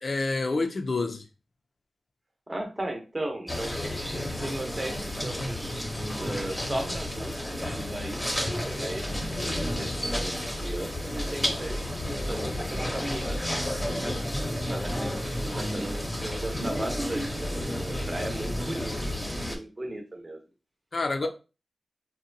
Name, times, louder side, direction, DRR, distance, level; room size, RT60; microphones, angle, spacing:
voice 1, 0.0-1.3 20.9-21.3, left 3 dB, 60° left, 0.4 m, -28 dB
voice 2, 2.5-3.8 4.4-5.8 6.2-9.1 9.5-11.7 12.1-13.4 14.6-20.4 21.2-21.3, right 1 dB, 30° right, 0.8 m, -36 dB
sound 1, 3.5-19.6, equal, 10° left, 0.8 m, -31 dB
2.7 x 2.1 x 2.6 m
cardioid pair, 60°, 0 cm